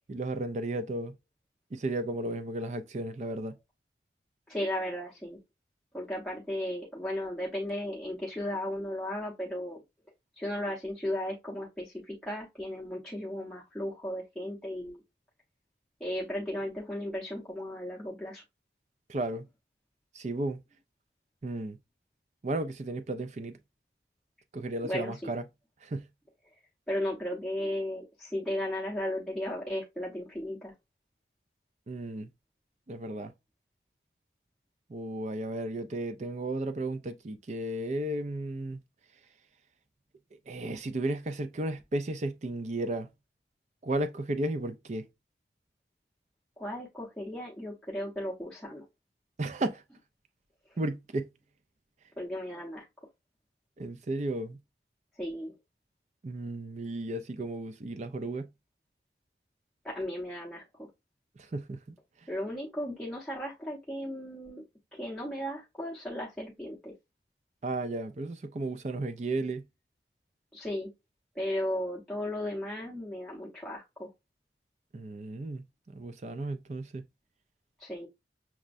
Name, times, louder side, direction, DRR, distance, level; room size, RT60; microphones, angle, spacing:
voice 1, 0.1-1.1 1.7-3.5 19.1-19.4 20.1-20.6 21.4-21.8 22.4-23.6 24.5-25.4 25.8-26.1 31.9-32.3 32.9-33.3 34.9-38.8 40.5-43.1 43.8-45.0 49.4-49.8 50.8-51.3 53.8-54.6 56.2-58.5 61.4-61.8 67.6-69.6 74.9-75.6 75.9-77.0, right 2 dB, 40° right, 0.4 m, -34 dB
voice 2, 4.5-5.4 5.9-9.8 10.4-15.0 16.0-18.4 24.8-25.2 26.9-30.7 46.6-48.8 52.2-52.8 55.2-55.5 59.8-60.9 62.3-64.6 64.9-66.9 70.5-70.9 71.3-74.1 77.8-78.1, left 1 dB, 5° left, 0.7 m, -35 dB
6.0 x 2.2 x 2.5 m
head